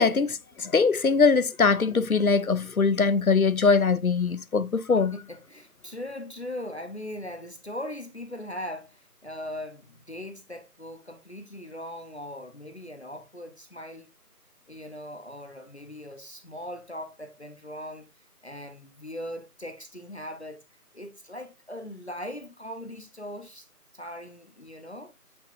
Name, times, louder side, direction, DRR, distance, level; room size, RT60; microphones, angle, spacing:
voice 1, 0.0-5.1, left 4 dB, 65° left, 0.7 m, -22 dB
voice 2, 4.9-14.1 14.7-18.1 18.4-23.7 23.9-25.1, left 1 dB, 45° left, 1.0 m, -40 dB
8.7 x 5.6 x 2.5 m
figure-of-eight pair, 175°, 47 cm